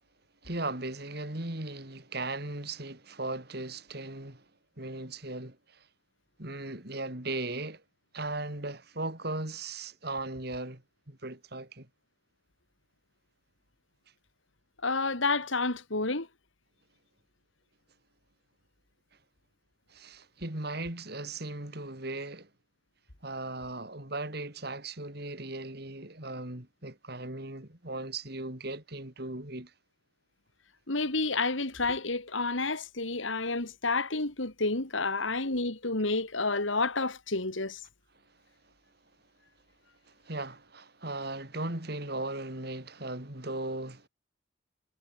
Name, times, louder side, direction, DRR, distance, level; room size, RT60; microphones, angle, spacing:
voice 1, 0.4-4.5 4.8-5.9 6.4-7.8 8.1-11.9 19.9-22.5 23.2-29.7 40.1-44.1, right 2 dB, 55° right, 3.5 m, -37 dB
voice 2, 14.8-16.3 30.9-37.8, left 3 dB, 75° left, 3.1 m, -30 dB
head